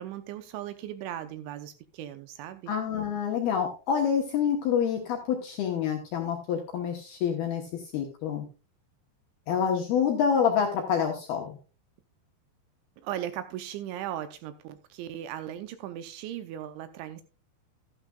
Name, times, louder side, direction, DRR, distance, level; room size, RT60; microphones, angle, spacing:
voice 1, 0.0-2.7 13.0-17.2, right 11 dB, 80° right, 10 dB, 2.9 m, -37 dB
voice 2, 2.7-8.5 9.5-11.6, left 7 dB, 75° left, 2 dB, 2.4 m, -27 dB
12.5 x 12.0 x 2.3 m, 0.32 s
omnidirectional pair, 5.8 m